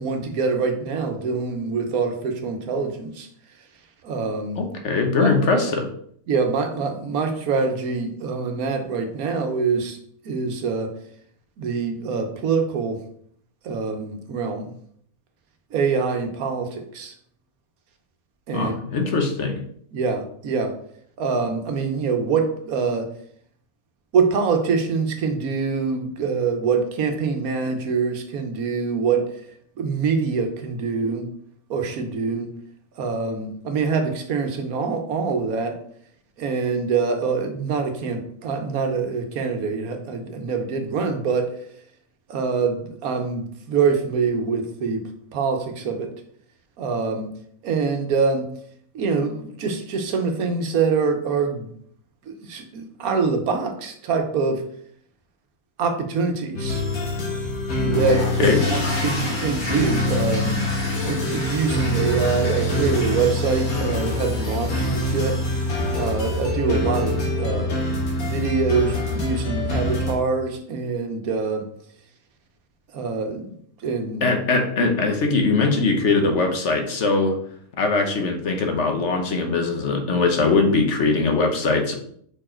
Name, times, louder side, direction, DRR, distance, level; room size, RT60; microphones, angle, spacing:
voice 1, 0.0-3.3 4.0-4.6 5.2-5.7 6.3-10.0 10.2-10.9 11.6-13.0 13.6-14.7 15.7-17.1 18.5-18.8 19.9-20.7 21.2-23.1 24.1-29.3 29.8-31.3 31.7-32.5 33.0-35.8 36.4-41.6 42.3-46.1 46.8-47.3 47.6-48.5 48.9-51.7 52.3-54.6 55.8-56.8 57.8-60.6 61.0-65.4 65.9-67.7 68.2-71.7 72.9-73.5 73.8-74.4, right 5 dB, 80° right, 6 dB, 1.4 m, -25 dB
voice 2, 4.6-5.9 18.5-19.6 58.4-58.6 74.2-77.3 77.8-81.9, left 3 dB, 55° left, 4 dB, 1.2 m, -21 dB
sound 1, 56.5-70.1, left 1 dB, 80° left, 1.9 m, -25 dB
sound 2, 57.9-66.4, left 1 dB, 35° left, 1.5 m, -33 dB
5.2 x 4.6 x 4.4 m, 0.63 s
omnidirectional pair, 1.5 m